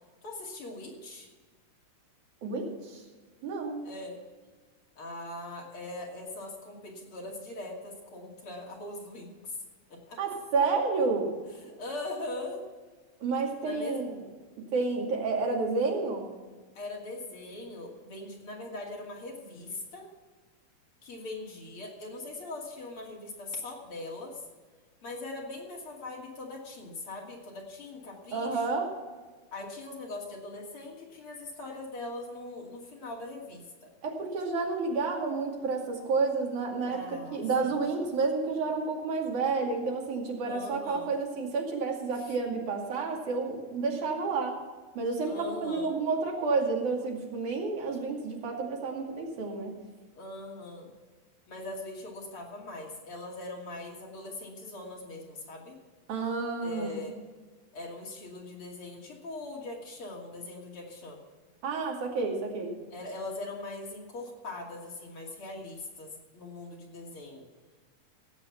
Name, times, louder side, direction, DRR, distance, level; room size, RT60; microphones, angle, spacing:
voice 1, 0.2-1.3 3.8-4.2 5.0-9.6 9.9-10.2 11.6-12.6 13.6-14.0 16.7-20.1 21.0-24.4 25.0-28.6 29.5-33.9 36.8-37.8 40.4-41.1 42.1-42.3 45.3-46.0 50.2-50.9 51.5-55.8 56.6-57.2 57.7-61.2 62.9-67.5, left 2 dB, 45° left, -1 dB, 3.2 m, -41 dB
voice 2, 2.4-3.0 3.4-3.8 10.2-11.3 13.2-14.2 14.7-16.3 28.3-28.9 34.0-44.6 45.0-49.7 56.1-57.0 61.6-62.7, right 4 dB, 75° right, 0 dB, 3.9 m, -30 dB
17.0 x 7.9 x 5.9 m, 1.4 s
omnidirectional pair, 3.5 m